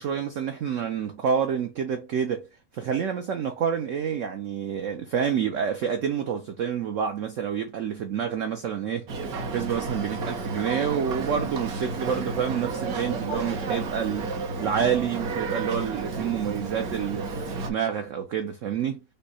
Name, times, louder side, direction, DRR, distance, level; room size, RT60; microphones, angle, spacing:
voice 1, 0.0-2.5 2.7-9.1 9.5-14.3 14.6-19.0, right 7 dB, 75° right, 0.7 m, -28 dB
Boat Water vehicle, 9.1-17.7, right 3 dB, 60° right, 1.3 m, -32 dB
5.4 x 2.1 x 4.1 m
omnidirectional pair, 2.0 m